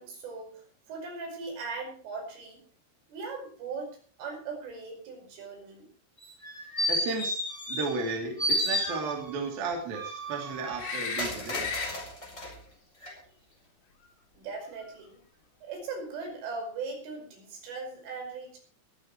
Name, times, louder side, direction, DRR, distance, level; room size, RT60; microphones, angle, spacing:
voice 1, 0.0-2.6 3.1-5.9 14.3-15.2 15.6-18.6, right 4 dB, 70° right, 3 dB, 7.7 m, -39 dB
sound 1, 6.2-8.1 8.4-9.4 9.9-12.5 13.0-13.1, equal, 15° left, 4.4 m, -32 dB
voice 2, 6.9-7.4 7.7-11.7, right 3 dB, 50° right, 1 dB, 4.3 m, -34 dB
sound 2, 10.8-11.9 14.8-14.9, left 4 dB, 80° left, 5.7 m, -34 dB
23.0 x 12.5 x 3.1 m, 0.40 s
omnidirectional pair, 5.9 m